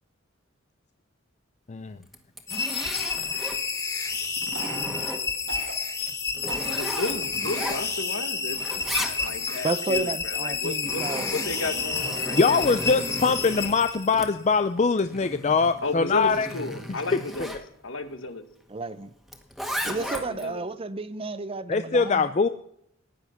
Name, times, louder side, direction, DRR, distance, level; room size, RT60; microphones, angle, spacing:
Zipper (clothing), 2.0-3.6 4.1-5.5 6.0-8.2 8.5-9.6 10.5-17.6 19.3-20.5, equal, ahead, 1.7 m, -36 dB
sound 1, 2.5-14.3, left 5 dB, 20° left, 2.5 m, -30 dB
Cough, 4.5-5.1 5.5-5.8 6.5-6.7 7.4-7.8 8.3-8.4 9.0-9.8, right 4 dB, 80° right, 2.9 m, -39 dB
voice 1, 6.7-11.0 11.3-12.8 15.8-17.6 17.8-18.4 20.0-20.6, left 2 dB, 70° left, 1.5 m, -33 dB
voice 2, 9.6-11.3 18.7-19.1 19.8-22.3, right 3 dB, 30° right, 0.6 m, -31 dB
voice 3, 12.3-16.5 17.1-17.2 21.7-22.5, left 4 dB, 35° left, 0.5 m, -22 dB
15.5 x 10.5 x 5.9 m
head